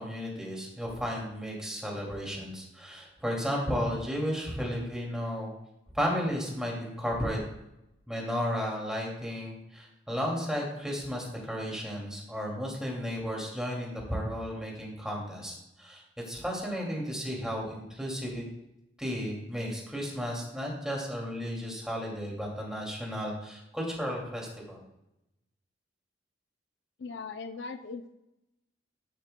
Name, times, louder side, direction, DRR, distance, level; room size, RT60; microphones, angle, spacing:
voice 1, 0.0-5.5 5.9-7.4 8.1-18.4 19.0-24.8, equal, 5° right, -2 dB, 2.3 m, -33 dB
voice 2, 27.0-28.1, left 4 dB, 65° left, 9 dB, 0.5 m, -39 dB
12.0 x 10.0 x 2.2 m, 0.88 s
head